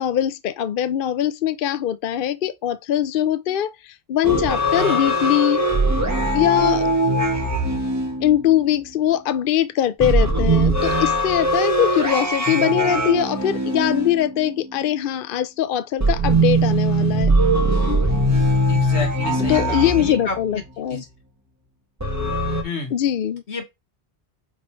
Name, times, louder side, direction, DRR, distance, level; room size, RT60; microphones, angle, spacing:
voice 1, 0.0-5.6 6.3-6.9 8.2-17.3 19.5-21.0 22.9-23.4, left 11 dB, 60° left, 0.7 m, -22 dB
sound 1, 4.2-8.9 10.0-14.8 16.0-20.6 22.0-22.6, right 1 dB, 15° right, 1.4 m, -21 dB
voice 2, 18.7-20.6 20.9-21.1 22.6-22.9 23.5-23.7, left 3 dB, 80° left, 1.8 m, -30 dB
5.3 x 4.0 x 4.4 m
omnidirectional pair, 1.1 m